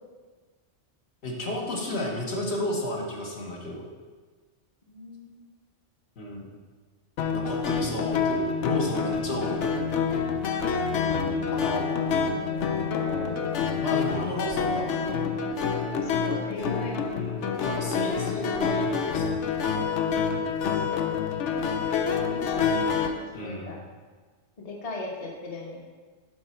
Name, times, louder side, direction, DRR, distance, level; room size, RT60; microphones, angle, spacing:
voice 1, 1.2-3.8 6.2-6.5 7.3-9.6 11.5-11.9 13.8-15.0 17.1-19.6 23.3-23.7, left 1 dB, 60° left, -2 dB, 1.4 m, -33 dB
voice 2, 4.9-5.4 12.3-13.5 14.6-15.2 15.9-16.9 18.4-18.7 20.3-21.2 22.1-23.8 24.6-25.8, left 2 dB, 35° left, -1 dB, 1.0 m, -39 dB
sound 1, 7.2-23.1, left 6 dB, 80° left, 1.0 m, -27 dB
7.6 x 4.1 x 5.6 m, 1.4 s
omnidirectional pair, 1.2 m